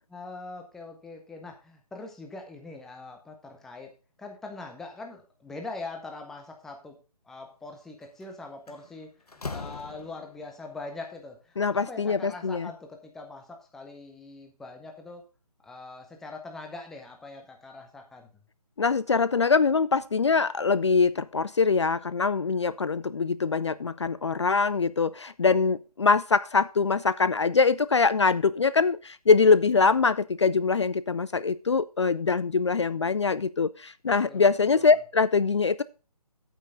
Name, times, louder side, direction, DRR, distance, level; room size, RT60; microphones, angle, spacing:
voice 1, 0.1-3.9 4.2-6.9 7.2-15.2 15.6-18.3 34.3-35.0, left 3 dB, ahead, 3 dB, 0.7 m, -42 dB
Slam, 8.0-8.3 8.7-10.5, left 4 dB, 70° left, 1.2 m, -40 dB
voice 2, 11.6-12.7 18.8-35.8, left 4 dB, 45° left, 17 dB, 0.4 m, -23 dB
9.3 x 9.0 x 3.6 m, 0.33 s
figure-of-eight pair, 150°, 20 cm